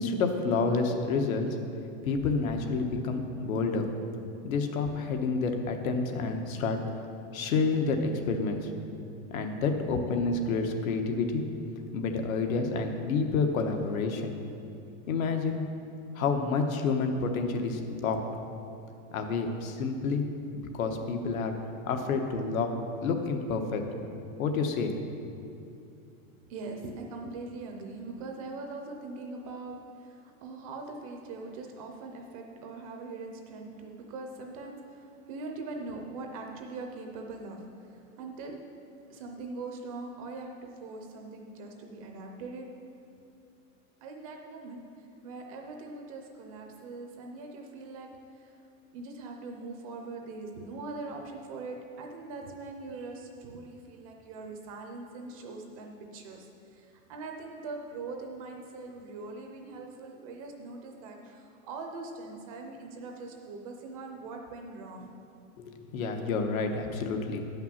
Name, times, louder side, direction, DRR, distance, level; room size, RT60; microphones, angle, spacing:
voice 1, 0.0-1.6 2.0-3.9 4.4-6.8 7.3-8.7 9.3-11.4 11.9-14.3 15.1-15.6 16.1-18.2 19.1-20.3 20.5-21.6 21.8-22.8 23.0-23.8 24.4-25.0 65.6-67.5, left 4 dB, 75° left, 5 dB, 1.2 m, -29 dB
voice 2, 26.5-38.6 39.1-42.7 44.0-44.8 45.2-48.1 48.3-48.5 48.9-65.1, right 3 dB, 25° right, 2 dB, 0.5 m, -42 dB
9.3 x 5.8 x 7.2 m, 2.6 s
supercardioid pair, 175°, 42 cm